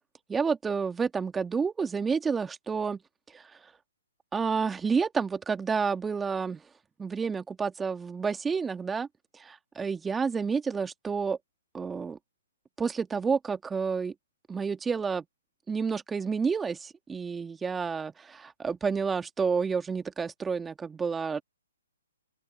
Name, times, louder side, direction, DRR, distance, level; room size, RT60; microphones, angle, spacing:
voice 1, 0.3-3.0 3.3-3.5 4.3-6.6 7.0-9.1 9.3-11.4 11.7-12.2 12.8-14.1 14.5-15.3 15.7-21.4, right 5 dB, 10° right, 2.0 m, -30 dB
open air
figure-of-eight pair, 130°, 0 cm